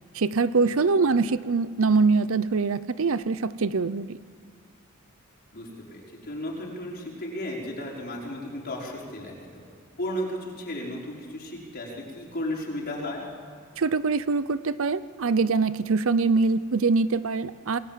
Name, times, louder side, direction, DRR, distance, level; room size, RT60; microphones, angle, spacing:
voice 1, 0.1-4.2 13.8-17.8, right 4 dB, 70° right, 15 dB, 0.7 m, -23 dB
voice 2, 5.5-9.6 10.0-13.2, left 1 dB, 50° left, -3 dB, 5.2 m, -34 dB
28.0 x 20.5 x 7.5 m, 2.2 s
head